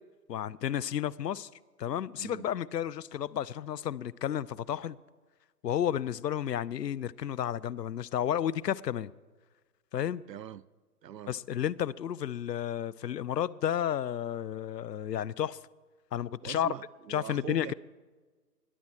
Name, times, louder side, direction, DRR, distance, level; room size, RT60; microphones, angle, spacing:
voice 1, 0.3-1.5 1.8-5.0 5.6-9.1 9.9-10.2 11.3-15.6 16.1-16.7 17.1-17.7, left 10 dB, 80° left, 0.6 m, -32 dB
voice 2, 10.3-10.6 11.0-11.4 16.4-17.7, right 10 dB, 80° right, 0.6 m, -43 dB
21.0 x 7.5 x 4.4 m
figure-of-eight pair, 160°, 49 cm